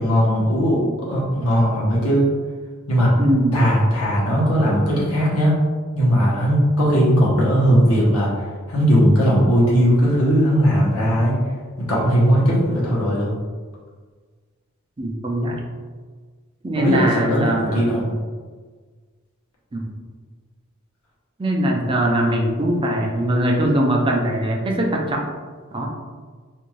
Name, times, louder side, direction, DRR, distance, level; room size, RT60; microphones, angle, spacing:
voice 1, 0.0-2.3 2.9-3.1 3.5-5.6 5.9-8.3 8.7-11.3 11.9-13.3 16.7-18.1, equal, 80° left, -5 dB, 0.9 m, -18 dB
voice 2, 3.2-3.6 15.0-15.6 16.6-17.9 19.7-19.9 21.4-25.2 25.7-25.9, right 1 dB, 25° right, 0 dB, 0.4 m, -21 dB
2.5 x 2.3 x 3.1 m, 1.5 s
head